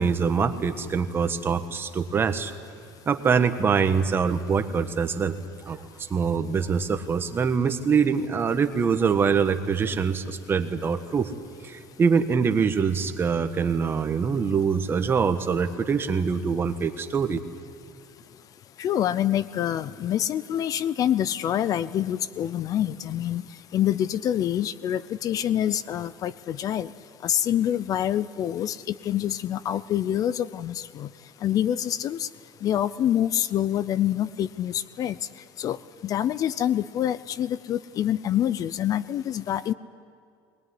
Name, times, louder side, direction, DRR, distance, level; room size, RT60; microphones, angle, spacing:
voice 1, 0.0-2.5 3.1-5.4 5.7-5.8 6.1-11.3 11.6-17.4, right 6 dB, 25° right, 8 dB, 1.4 m, -24 dB
voice 2, 18.8-23.4 23.7-26.9 27.2-28.8 29.0-31.1 31.4-32.3 32.6-35.2 35.6-35.8 36.0-39.7, left 11 dB, 45° left, 17 dB, 0.6 m, -26 dB
22.0 x 20.0 x 9.8 m, 2.3 s
cardioid pair, 120°, 9 cm